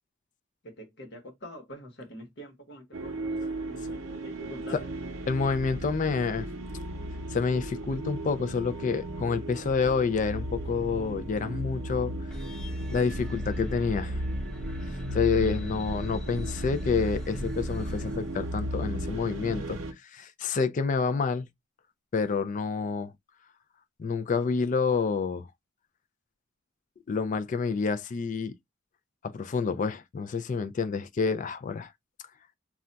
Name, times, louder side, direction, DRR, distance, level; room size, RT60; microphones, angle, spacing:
voice 1, 0.6-4.9, equal, 55° left, 1.0 m, -45 dB
sound 1, 2.9-19.9, right 1 dB, 80° right, 0.6 m, -35 dB
voice 2, 5.3-6.5 7.3-12.1 12.9-14.2 14.9-21.5 22.1-23.1 24.0-25.5 27.1-28.5 29.2-31.9, left 5 dB, 40° left, 0.3 m, -28 dB
sound 2, 12.3-18.9, equal, 5° left, 0.7 m, -40 dB
2.3 x 2.2 x 3.8 m
head